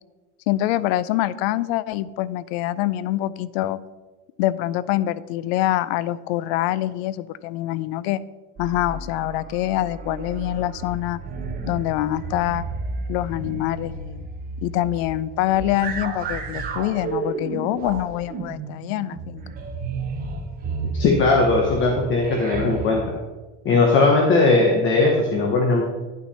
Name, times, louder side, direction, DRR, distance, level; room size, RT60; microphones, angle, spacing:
voice 1, 0.5-3.8 4.4-8.2 8.6-11.2 11.7-12.7 13.1-14.3 14.6-19.4, left 14 dB, 75° left, 18 dB, 0.5 m, -25 dB
sound 1, 8.6-22.9, right 4 dB, 25° right, 1.0 m, -32 dB
voice 2, 20.9-23.2 23.6-25.8, left 3 dB, 35° left, 1 dB, 1.1 m, -18 dB
10.5 x 5.9 x 4.2 m, 1.3 s
cardioid pair, 155°, 32 cm